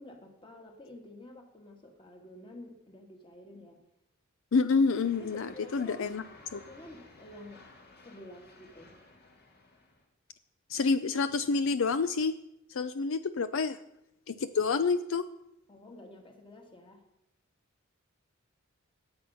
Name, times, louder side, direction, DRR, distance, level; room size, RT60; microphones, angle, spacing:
voice 1, 0.0-3.8 5.2-6.1 6.5-7.7 8.0-9.0 15.7-17.0, left 1 dB, 25° left, 3 dB, 1.9 m, -50 dB
voice 2, 4.5-6.2 6.5-6.6 10.7-12.3 12.7-13.8 14.3-15.3, left 4 dB, 65° left, 13 dB, 0.5 m, -28 dB
sound 1, 4.9-10.0, left 2 dB, 50° left, 2.2 m, -55 dB
19.5 x 7.9 x 5.7 m, 0.86 s
head